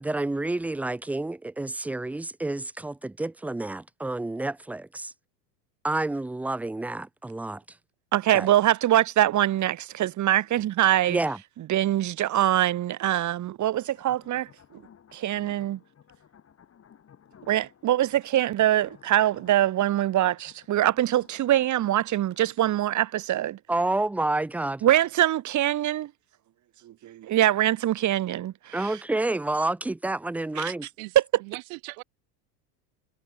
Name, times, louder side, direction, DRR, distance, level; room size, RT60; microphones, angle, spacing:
voice 1, 0.0-5.1 5.8-7.6 8.3-8.5 11.1-11.4 23.7-24.8 28.7-30.9, right 2 dB, 5° right, 0.4 m, -29 dB
voice 2, 8.1-11.2 11.7-14.8 15.1-15.8 17.5-23.6 24.8-26.1 26.8-28.9 30.6-30.7 31.2-31.3, right 13 dB, 35° right, 2.0 m, -23 dB
sound 1, 13.7-22.6, left 8 dB, 30° left, 7.7 m, -56 dB
voice 3, 31.0-32.0, right 40 dB or more, 60° right, 2.3 m, -40 dB
supercardioid pair, 115°, 48 cm